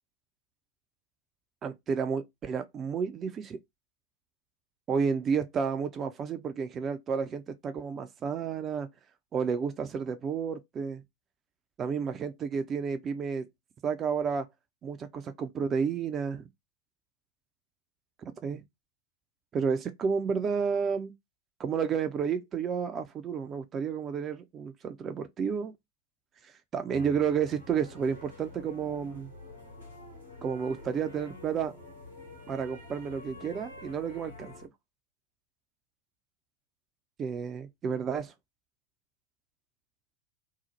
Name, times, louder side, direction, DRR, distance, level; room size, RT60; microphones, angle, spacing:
voice 1, 1.6-3.6 4.9-8.9 9.3-11.0 11.8-13.5 13.8-14.5 14.8-16.4 18.4-18.6 19.5-21.1 21.6-25.7 26.7-29.3 30.4-31.8 32.5-34.5 37.2-38.3, right 6 dB, 25° right, 0.4 m, -31 dB
sound 1, 26.9-34.7, left 2 dB, 90° right, 1.1 m, -48 dB
2.7 x 2.0 x 2.9 m
figure-of-eight pair, 90°, 0 cm